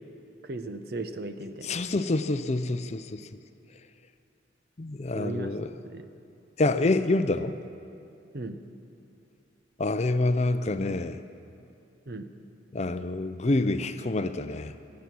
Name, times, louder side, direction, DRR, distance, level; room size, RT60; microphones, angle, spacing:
voice 1, 0.4-1.8 5.1-5.5 5.8-6.1 8.3-8.6 12.1-12.3, right 2 dB, 55° right, 8 dB, 0.8 m, -36 dB
voice 2, 1.6-3.3 4.8-5.7 6.6-7.6 9.8-11.2 12.7-14.7, left 2 dB, 35° left, 11 dB, 0.5 m, -27 dB
19.5 x 11.5 x 6.1 m, 2.6 s
head